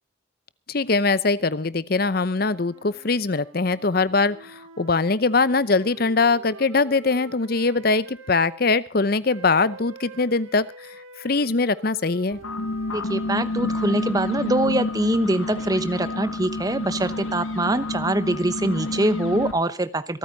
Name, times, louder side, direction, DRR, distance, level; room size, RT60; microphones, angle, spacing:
voice 1, 0.7-10.7 11.2-12.4, left 3 dB, 50° left, 17 dB, 0.7 m, -22 dB
sound 1, 2.3-8.6 9.3-16.4, right 2 dB, 90° right, 3.5 m, -46 dB
sound 2, 12.3-19.5, left 2 dB, 90° left, 2.1 m, -29 dB
voice 2, 12.9-20.2, right 1 dB, 20° right, 13 dB, 0.9 m, -24 dB
26.5 x 9.2 x 4.0 m, 0.34 s
head